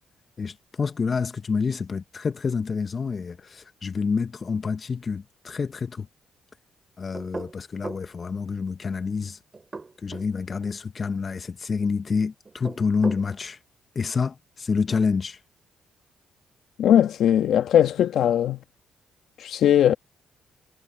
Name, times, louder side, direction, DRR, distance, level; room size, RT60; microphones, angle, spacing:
voice 1, 0.4-6.1 7.0-9.4 10.0-13.6 14.0-15.4, left 5 dB, 40° left, 0.7 m, -28 dB
sound 1, 7.1-8.1 9.5-10.3 12.4-13.3, right 3 dB, 30° right, 2.6 m, -37 dB
voice 2, 16.8-18.6 19.4-19.9, left 10 dB, 75° left, 1.5 m, -19 dB
cardioid pair, 75°, 0 cm